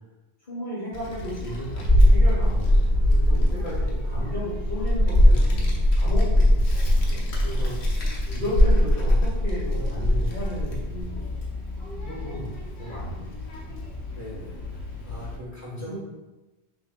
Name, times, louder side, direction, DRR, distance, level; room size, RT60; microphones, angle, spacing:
voice 1, 0.5-7.7 8.3-11.3 12.0-12.5 12.8-13.9 15.9-16.0, equal, 45° left, -9 dB, 1.2 m, -34 dB
Child speech kid speaking, 0.9-15.4, left 1 dB, 80° left, 1.0 m, -22 dB
voice 2, 7.7-8.2 14.1-16.0, left 1 dB, 15° left, -6 dB, 1.3 m, -42 dB
5.7 x 2.8 x 2.2 m, 1.1 s
omnidirectional pair, 1.1 m